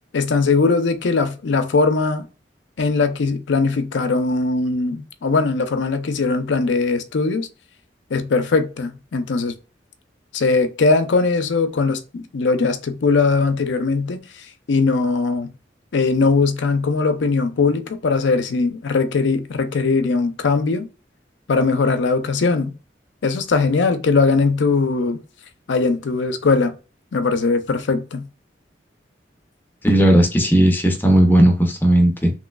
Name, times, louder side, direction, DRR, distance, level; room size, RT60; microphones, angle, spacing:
voice 1, 0.1-2.3 2.8-7.5 8.1-9.5 10.3-15.5 15.9-20.9 21.5-22.7 23.2-25.2 25.7-26.7 27.1-28.3, left 4 dB, 80° left, 0.5 m, -20 dB
voice 2, 29.8-32.3, right 1 dB, 10° left, 0.6 m, -15 dB
3.1 x 3.0 x 2.3 m
head